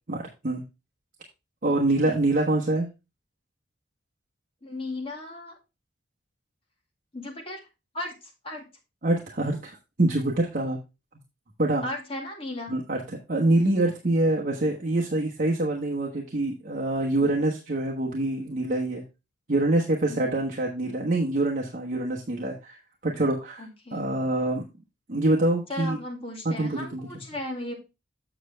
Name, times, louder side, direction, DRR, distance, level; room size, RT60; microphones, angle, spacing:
voice 1, 0.1-0.6 1.6-2.9 9.0-9.7 10.0-10.8 11.6-11.8 12.7-13.0 13.3-19.0 19.5-22.8 23.0-23.6 23.9-24.6 25.1-26.0 26.4-27.1, right 2 dB, 45° right, -1 dB, 1.2 m, -25 dB
voice 2, 4.6-5.6 7.1-7.6 7.9-8.7 11.8-12.8 17.2-17.4 20.1-20.4 23.6-24.0 25.7-27.7, left 1 dB, 30° left, 0 dB, 2.2 m, -36 dB
7.7 x 6.6 x 3.4 m, 0.27 s
head